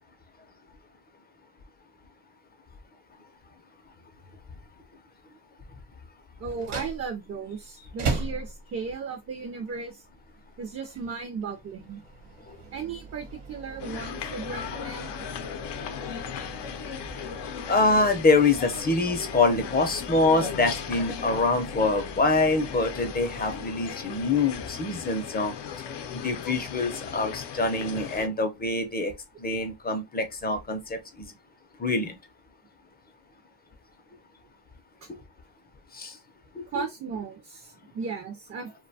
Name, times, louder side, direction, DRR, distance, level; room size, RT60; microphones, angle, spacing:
voice 1, 6.4-10.0 10.6-12.0 12.7-15.3 35.0-35.1 36.7-38.7, right 5 dB, 40° right, 0.4 m, -36 dB
sound 1, 6.5-24.3, right 4 dB, 70° right, 1.0 m, -40 dB
sound 2, 13.8-28.3, left 7 dB, 75° left, 0.5 m, -37 dB
voice 2, 17.7-25.5 26.1-29.1 29.4-31.3 31.8-32.2 35.9-36.2 36.6-36.8, left 3 dB, 25° left, 0.4 m, -25 dB
2.5 x 2.2 x 2.6 m
cardioid pair, 130°, 41 cm